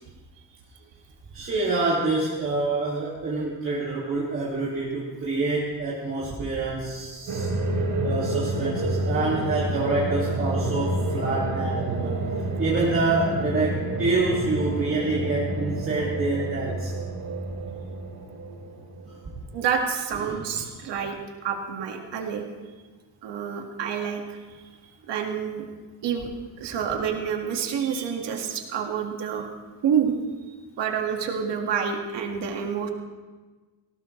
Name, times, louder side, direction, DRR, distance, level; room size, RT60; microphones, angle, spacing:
voice 1, 1.3-7.5 8.0-12.1 12.6-16.9 19.0-19.1 20.2-20.4, right 3 dB, 30° right, -6 dB, 2.3 m, -27 dB
sound 1, 7.3-19.3, right 2 dB, 50° right, 3.6 m, -29 dB
voice 2, 19.5-21.2 21.4-22.4 23.2-24.4 25.1-25.6 26.0-26.3 26.6-29.5 29.8-30.1 30.8-32.9, right 7 dB, 75° right, 2 dB, 2.1 m, -28 dB
19.0 x 17.5 x 3.2 m, 1.3 s
cardioid pair, 175°, 42 cm